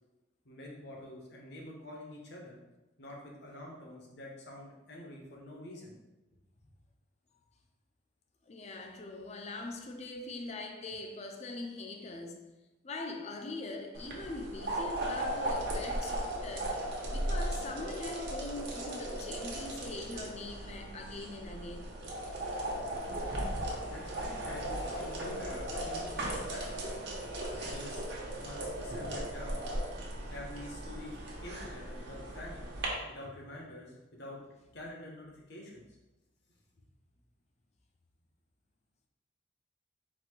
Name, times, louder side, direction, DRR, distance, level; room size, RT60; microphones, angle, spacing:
voice 1, 0.4-2.6 3.0-6.0 23.9-26.8 27.5-28.1 28.4-29.7 30.3-32.7 33.1-34.4 34.7-35.8, left 1 dB, 60° left, 1.0 m, -47 dB
voice 2, 8.5-12.5 12.8-16.8 17.1-21.9, left 2 dB, 35° left, 0.5 m, -42 dB
sound 1, 13.9-32.9, right 1 dB, 65° right, 1.0 m, -37 dB
sound 2, 19.0-25.2, right 2 dB, 80° right, 1.1 m, -54 dB
4.2 x 2.6 x 4.4 m
head